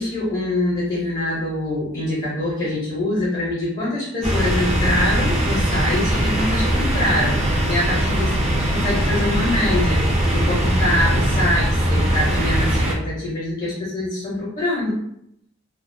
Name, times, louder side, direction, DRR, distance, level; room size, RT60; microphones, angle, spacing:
voice 1, 0.0-7.4 7.7-8.3 8.7-15.0, left 1 dB, 35° left, -6 dB, 0.6 m, -24 dB
sound 1, 4.2-12.9, right 1 dB, 35° right, 0.4 m, -20 dB
2.3 x 2.1 x 2.5 m, 0.75 s
head